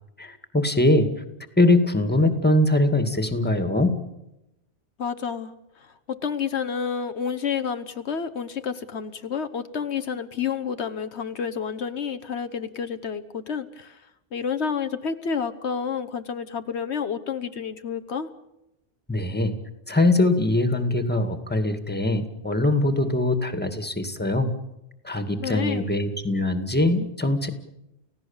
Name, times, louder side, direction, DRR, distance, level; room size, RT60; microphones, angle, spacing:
voice 1, 0.2-1.1 1.6-4.0 19.1-19.6 19.9-24.5 25.0-27.5, left 2 dB, 10° left, 8 dB, 2.1 m, -22 dB
voice 2, 5.0-14.0 14.3-18.3 25.4-25.9, left 6 dB, 75° left, 10 dB, 1.3 m, -30 dB
30.0 x 16.5 x 7.2 m, 0.89 s
omnidirectional pair, 1.1 m